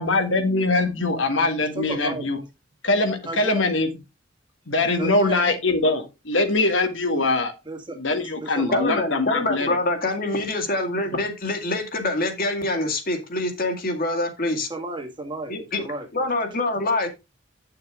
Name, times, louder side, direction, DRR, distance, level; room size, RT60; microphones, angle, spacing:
voice 1, 0.0-2.4 2.8-3.9 4.7-7.5 8.0-9.7, left 2 dB, 90° left, 6 dB, 1.9 m, -22 dB
voice 2, 1.6-2.3 3.3-3.7 5.0-5.6 7.1-7.3 7.7-9.0 11.1-11.2 14.7-16.1, right 1 dB, 25° right, 4 dB, 1.8 m, -33 dB
voice 3, 8.7-14.7 15.5-15.8 16.1-17.1, left 2 dB, 50° left, 5 dB, 2.2 m, -25 dB
9.5 x 6.8 x 3.7 m, 0.25 s
head